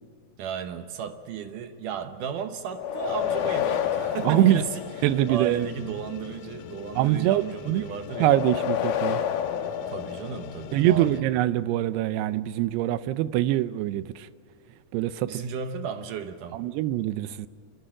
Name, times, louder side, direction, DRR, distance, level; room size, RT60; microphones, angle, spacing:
voice 1, 0.4-4.8 5.3-8.3 9.9-11.2 15.2-16.6, right 7 dB, 70° right, 2.2 m, -34 dB
sound 1, 2.7-5.5 8.1-10.8, left 9 dB, 70° left, 2.4 m, -29 dB
sound 2, 3.1-11.2, left 12 dB, 90° left, 2.8 m, -43 dB
voice 2, 4.2-4.6 5.0-5.9 7.0-7.8 8.2-9.2 10.7-14.3 14.9-15.4 16.5-17.5, right 13 dB, 90° right, 2.8 m, -24 dB
28.0 x 14.0 x 8.8 m
omnidirectional pair, 4.6 m